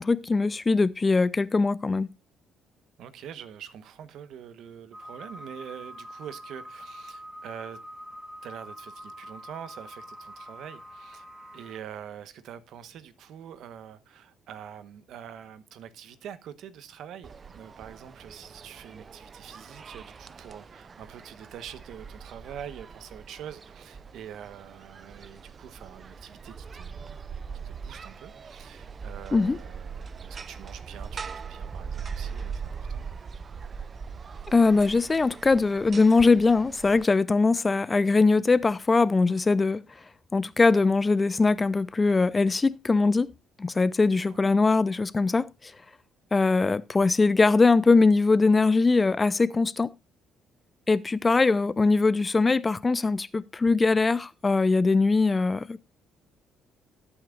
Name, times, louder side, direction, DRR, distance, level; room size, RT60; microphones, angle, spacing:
voice 1, 0.0-2.1 29.3-29.6 34.5-39.8 40.3-43.3 43.6-45.5 46.3-49.9 50.9-55.8, left 3 dB, 20° left, 0.5 m, -21 dB
voice 2, 3.0-7.8 8.4-11.3 11.5-27.1 27.6-33.1 44.3-44.4, right 9 dB, 75° right, 1.2 m, -44 dB
sound 1, 4.9-11.8, equal, 15° right, 2.0 m, -44 dB
sound 2, 17.2-37.1, right 6 dB, 35° right, 0.5 m, -41 dB
19.0 x 8.7 x 2.5 m
cardioid pair, 115°, 0 cm